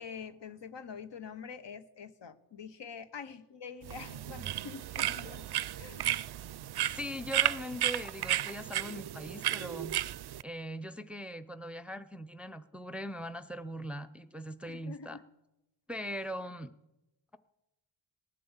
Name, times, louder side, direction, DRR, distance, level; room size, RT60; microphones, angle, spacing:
voice 1, 0.0-5.4 5.8-6.1 14.6-15.2 16.0-16.3, left 6 dB, 60° left, 11 dB, 1.1 m, -46 dB
sound 1, 3.8-10.4, right 13 dB, 55° right, 0.5 m, -33 dB
voice 2, 6.9-10.0 10.4-15.2 15.9-16.7, equal, ahead, 11 dB, 0.6 m, -40 dB
18.5 x 7.6 x 7.3 m, 0.98 s
cardioid pair, 55°, 48 cm